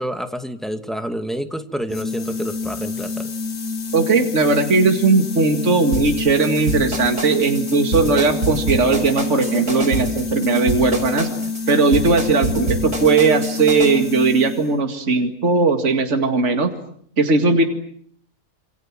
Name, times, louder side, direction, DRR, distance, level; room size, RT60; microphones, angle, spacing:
voice 1, 0.0-3.3, equal, ahead, 2.1 m, -28 dB
sound 1, 1.9-14.8, left 4 dB, 70° left, 2.3 m, -28 dB
voice 2, 3.9-11.3 11.7-16.7 17.2-17.6, right 3 dB, 45° right, 2.5 m, -18 dB
sound 2, 5.9-13.9, right 2 dB, 70° right, 6.6 m, -26 dB
28.0 x 27.0 x 7.5 m
omnidirectional pair, 1.7 m